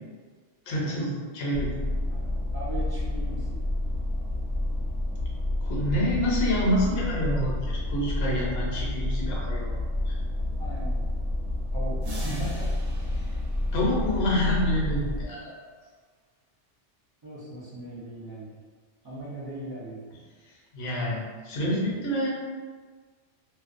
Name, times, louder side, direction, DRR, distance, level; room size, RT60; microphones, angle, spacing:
voice 1, 0.7-1.7 5.6-9.7 10.1-10.2 12.3-12.4 13.7-15.5 20.7-22.3, equal, 60° left, -3 dB, 0.8 m, -27 dB
sound 1, 1.5-15.2, left 1 dB, 55° right, 1.0 m, -29 dB
voice 2, 2.5-3.6 10.6-11.1 11.7-12.7 15.1-15.3 17.2-18.5 19.0-20.0, right 1 dB, 35° right, -9 dB, 0.3 m, -39 dB
sound 2, 12.0-14.8, right 1 dB, 80° right, 1.0 m, -44 dB
2.4 x 2.1 x 2.4 m, 1.5 s
omnidirectional pair, 1.2 m